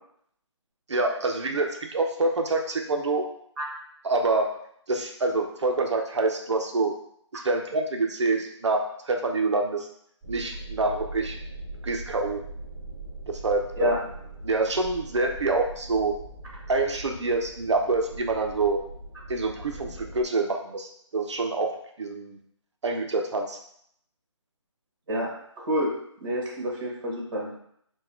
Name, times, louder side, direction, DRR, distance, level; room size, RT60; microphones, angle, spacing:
voice 1, 0.9-3.3 4.0-4.5 4.9-7.0 7.3-9.9 10.3-11.4 11.8-12.4 13.3-13.9 14.4-16.1 16.7-18.8 19.3-21.7 22.0-22.4 22.8-23.6, right 3 dB, 65° right, 2 dB, 0.7 m, -26 dB
sound 1, 10.2-20.2, right 2 dB, 5° right, 1.5 m, -41 dB
voice 2, 25.6-25.9 26.2-27.6, equal, 45° right, -4 dB, 1.8 m, -27 dB
4.6 x 2.3 x 4.3 m, 0.69 s
hypercardioid pair, 170°, 16 cm